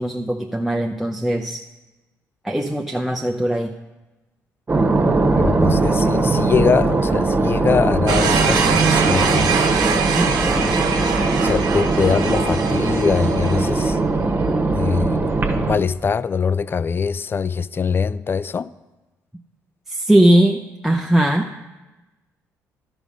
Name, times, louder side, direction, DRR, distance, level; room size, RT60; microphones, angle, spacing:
voice 1, 0.0-1.6 2.4-3.7 9.9-10.6 19.9-21.5, right 1 dB, 5° right, 0.6 m, -20 dB
sound 1, 4.7-15.7, right 3 dB, 30° right, 1.2 m, -20 dB
voice 2, 5.4-9.6 10.4-14.0 14.7-15.2 15.7-18.7, left 6 dB, 35° left, 0.3 m, -23 dB
sound 2, 8.1-14.0, right 6 dB, 75° right, 0.8 m, -24 dB
12.0 x 5.1 x 5.2 m
supercardioid pair, 60°, 7 cm